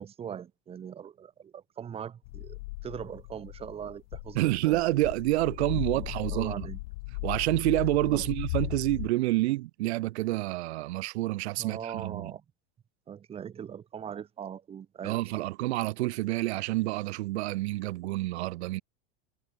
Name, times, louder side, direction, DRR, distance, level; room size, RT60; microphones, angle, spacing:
voice 1, 0.0-4.8 5.7-6.8 8.1-8.3 11.6-12.4 13.1-15.4, right 8 dB, 15° right, 3.4 m, -41 dB
sound 1, 2.2-9.1, left 22 dB, 60° left, 1.5 m, -37 dB
voice 2, 4.4-6.7 7.2-12.3 15.0-18.8, right 18 dB, 75° right, 3.5 m, -28 dB
supercardioid pair, 180°, 33 cm